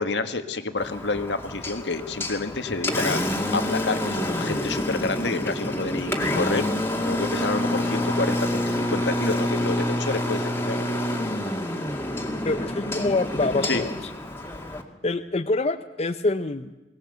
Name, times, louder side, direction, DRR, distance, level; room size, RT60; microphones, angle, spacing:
voice 1, 0.0-3.2 3.5-6.7 7.0-11.0 13.6-13.8, left 3 dB, 70° left, 8 dB, 1.7 m, -29 dB
Engine, 0.8-14.8, left 1 dB, 15° left, 2.2 m, -27 dB
Wind instrument woodwind instrument, 6.8-11.3, left 2 dB, 20° right, 2.7 m, -42 dB
voice 2, 12.5-13.9 15.0-16.7, left 2 dB, 35° left, 8 dB, 0.6 m, -25 dB
22.5 x 18.5 x 7.9 m, 1.1 s
head